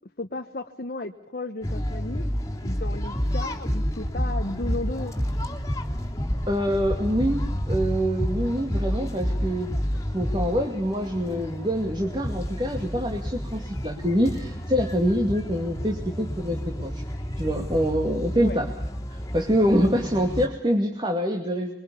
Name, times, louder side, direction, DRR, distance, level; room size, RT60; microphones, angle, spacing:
voice 1, 0.2-2.2 2.6-5.1 18.4-18.6, left 2 dB, 55° left, 4 dB, 1.1 m, -34 dB
sound 1, 1.6-20.5, equal, 15° left, 3.1 m, -30 dB
voice 2, 6.5-9.7 10.1-17.0 17.4-18.7 19.1-21.8, equal, 25° right, 2 dB, 2.4 m, -25 dB
26.0 x 23.0 x 7.0 m, 0.74 s
head